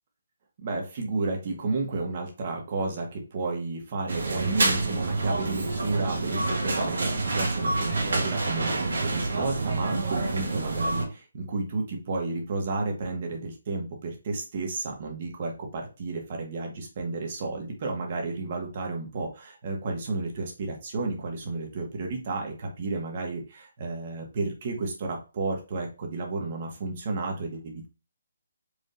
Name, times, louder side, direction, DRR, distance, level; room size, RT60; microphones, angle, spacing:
voice 1, 0.6-27.9, right 3 dB, 40° right, 2 dB, 1.6 m, -32 dB
sound 1, 4.1-11.0, right 3 dB, 70° right, 1.8 m, -27 dB
4.9 x 3.7 x 2.6 m, 0.31 s
hypercardioid pair, 155°, 0 cm